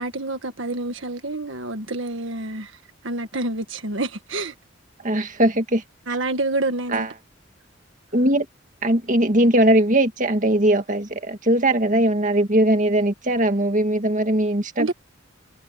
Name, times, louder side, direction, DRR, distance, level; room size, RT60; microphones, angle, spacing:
voice 1, 0.0-4.5 6.1-7.1 14.8-14.9, right 2 dB, 70° right, 1.7 m, -28 dB
voice 2, 5.0-5.8 6.9-7.1 8.1-8.5 8.8-14.9, right 1 dB, 40° right, 2.1 m, -20 dB
head